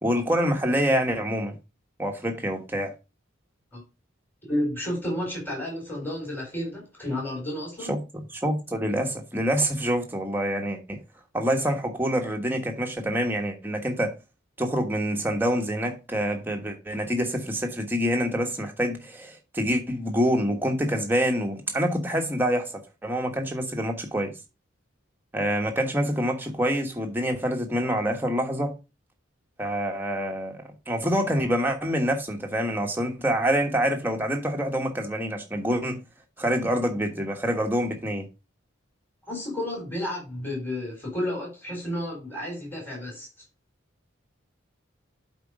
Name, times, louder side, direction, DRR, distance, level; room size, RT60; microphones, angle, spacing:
voice 1, 0.0-1.6 2.0-2.9 7.9-11.0 11.3-14.1 14.6-24.3 25.3-28.7 29.6-30.6 30.9-36.0 36.4-38.3, equal, 10° right, 1.3 m, -26 dB
voice 2, 4.5-7.9 39.3-43.3, left 1 dB, 10° left, 4.3 m, -31 dB
8.1 x 4.5 x 4.9 m
head